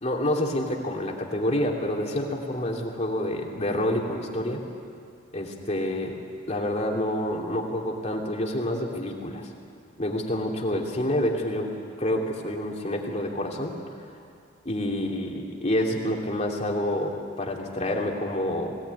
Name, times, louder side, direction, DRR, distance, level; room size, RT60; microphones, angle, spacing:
voice 1, 0.0-4.6 5.3-6.2 6.5-9.5 10.0-11.7 12.0-13.8 14.6-18.8, left 1 dB, 35° left, 0 dB, 2.9 m, -28 dB
21.5 x 17.5 x 9.5 m, 2.3 s
head